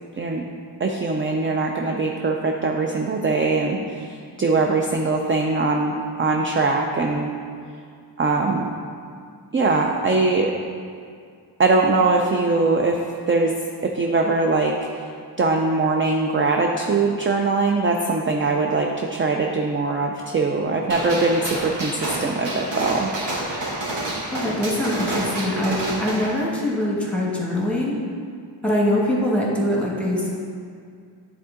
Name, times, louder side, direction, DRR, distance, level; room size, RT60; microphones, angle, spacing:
voice 1, 0.8-7.3 8.2-8.7 9.5-10.5 11.6-13.0 13.3-13.5 13.8-15.1 15.4-23.1, right 3 dB, 30° right, 1 dB, 0.4 m, -21 dB
Gunshot gunfire, 20.9-26.3, right 1 dB, 75° right, 1.6 m, -29 dB
voice 2, 24.3-28.0 28.6-30.3, left 1 dB, 5° left, -4 dB, 1.2 m, -23 dB
9.5 x 3.8 x 3.6 m, 2.2 s
wide cardioid pair, 125°, 44 cm